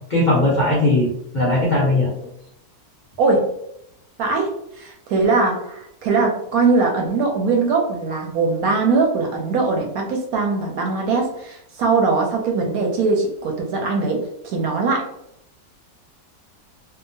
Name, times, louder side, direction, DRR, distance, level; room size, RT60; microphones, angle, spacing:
voice 1, 0.1-2.1, left 1 dB, 85° left, -6 dB, 0.4 m, -18 dB
voice 2, 4.2-4.5 4.8-15.0, right 4 dB, 70° right, 1 dB, 0.9 m, -21 dB
2.8 x 2.1 x 2.6 m, 0.77 s
omnidirectional pair, 1.9 m